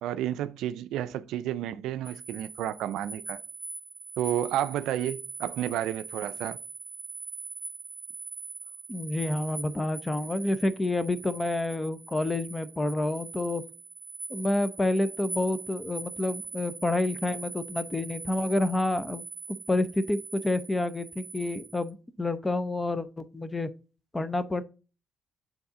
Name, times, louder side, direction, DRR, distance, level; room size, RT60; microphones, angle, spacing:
voice 1, 0.0-3.4 4.2-6.6, right 11 dB, 90° right, 0.4 m, -31 dB
sound 1, 2.0-21.9, right 4 dB, 40° right, 0.9 m, -42 dB
voice 2, 8.9-13.6 14.3-19.2 19.7-23.7 24.1-24.6, left 2 dB, 20° left, 0.6 m, -28 dB
6.9 x 4.0 x 3.7 m
cardioid pair, 90°, 0 cm